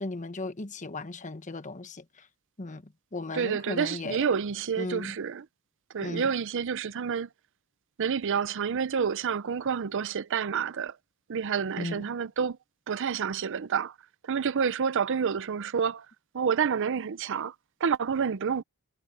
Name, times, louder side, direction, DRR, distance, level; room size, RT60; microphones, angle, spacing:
voice 1, 0.0-2.0 2.6-2.8 3.1-4.2 4.8-5.1 6.0-6.3 11.8-12.1, left 2 dB, 35° left, 1.1 m, -36 dB
voice 2, 3.3-5.5 5.9-7.3 8.0-11.0 11.3-12.6 12.9-13.9 14.2-16.1 16.3-17.5 17.8-18.6, right 6 dB, 60° right, 0.5 m, -28 dB
head